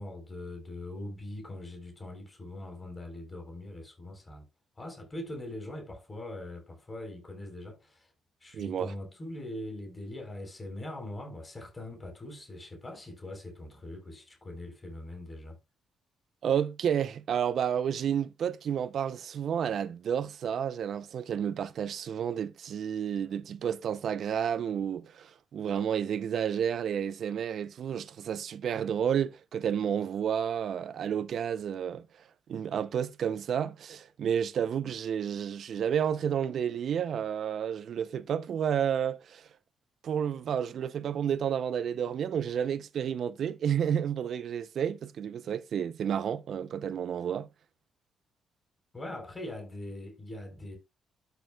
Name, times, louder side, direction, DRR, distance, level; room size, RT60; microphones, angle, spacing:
voice 1, 0.0-4.5 4.8-8.1 8.4-15.6 48.9-50.8, left 1 dB, 25° left, 3.9 m, -42 dB
voice 2, 8.5-8.9 16.4-32.1 32.5-39.5 40.0-47.5, right 8 dB, 60° right, 0.6 m, -31 dB
12.5 x 7.0 x 2.3 m
cardioid pair, 90°, 0 cm